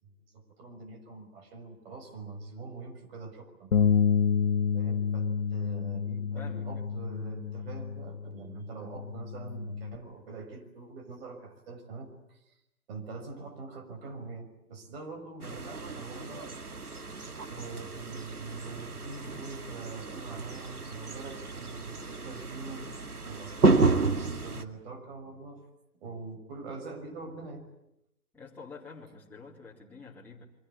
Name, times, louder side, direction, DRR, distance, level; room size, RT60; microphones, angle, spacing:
voice 1, 0.0-3.7 4.7-12.6 12.9-16.8 17.5-22.9 23.2-25.7 26.0-27.7, right 3 dB, 40° right, 6 dB, 6.0 m, -43 dB
Bass guitar, 3.7-10.0, left 6 dB, 65° left, 1.5 m, -29 dB
voice 2, 6.3-6.7 28.3-30.4, left 4 dB, 5° left, -5 dB, 3.8 m, -47 dB
sound 1, 15.4-24.6, right 3 dB, 80° right, 2.2 m, -31 dB
29.0 x 24.0 x 8.4 m, 0.83 s
figure-of-eight pair, 125°, 44 cm